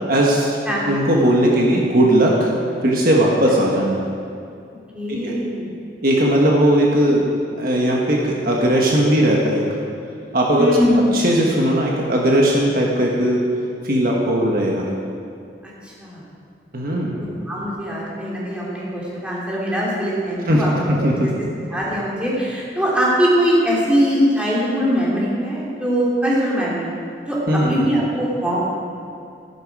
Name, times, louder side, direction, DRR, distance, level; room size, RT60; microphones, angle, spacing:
voice 1, 0.1-0.6 0.9-2.5 2.8-4.0 5.1-5.3 6.0-7.2 7.6-9.6 10.3-10.7 11.1-13.4 13.8-14.9 16.7-17.2 20.5-20.6 21.0-21.1 27.5-27.7, right 1 dB, 55° right, -2 dB, 1.5 m, -17 dB
voice 2, 4.9-5.7 10.6-11.0 15.8-16.2 17.2-21.3 21.7-26.9 27.3-28.6, equal, 5° right, -7 dB, 3.1 m, -21 dB
14.0 x 11.0 x 4.9 m, 2.5 s
head